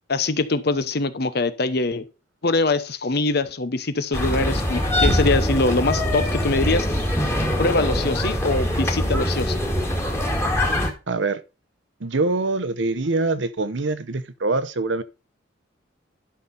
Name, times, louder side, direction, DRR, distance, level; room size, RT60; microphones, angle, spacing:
voice 1, 0.1-2.0 2.4-6.9 7.6-9.6, left 3 dB, 55° left, 1.0 m, -23 dB
sound 1, 4.1-10.9, equal, 15° left, 2.0 m, -23 dB
voice 2, 11.1-11.4 12.0-15.0, right 3 dB, 70° right, 0.8 m, -24 dB
11.5 x 5.8 x 4.1 m
head